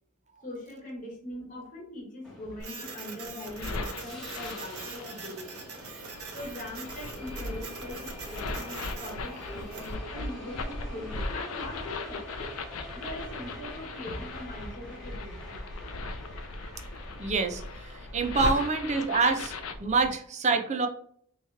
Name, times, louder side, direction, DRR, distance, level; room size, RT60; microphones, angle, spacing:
voice 1, 0.4-5.7 6.3-12.5 12.9-15.6 18.5-18.6, left 1 dB, 35° left, -1 dB, 1.3 m, -42 dB
Subway metro underground, 2.2-20.1, equal, 5° left, 1.1 m, -46 dB
Printer, 2.6-9.9, right 5 dB, 85° right, 0.9 m, -43 dB
sound 1, 3.2-5.2 6.0-19.7, left 3 dB, 75° left, 0.5 m, -38 dB
voice 2, 17.2-20.9, right 4 dB, 30° right, 5 dB, 0.5 m, -27 dB
3.1 x 2.9 x 3.4 m, 0.62 s
head